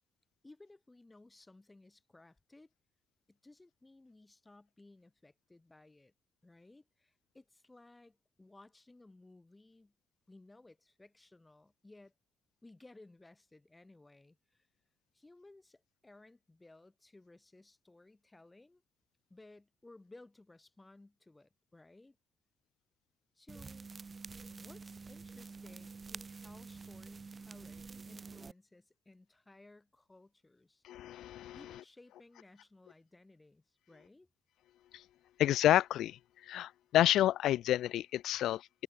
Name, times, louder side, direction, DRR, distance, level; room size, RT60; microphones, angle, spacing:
voice 1, 0.4-2.7 3.3-6.1 6.4-9.9 10.3-12.1 12.6-14.7 15.1-18.8 19.3-22.2 23.3-23.9 24.4-30.8 31.5-34.3, left 2 dB, 15° left, 7.2 m, -59 dB
sound 1, 23.5-28.5, right 4 dB, 30° right, 5.7 m, -48 dB
voice 2, 30.8-31.6 35.4-36.2 36.5-38.8, left 13 dB, 80° left, 0.4 m, -29 dB
cardioid pair, 90°, 0 cm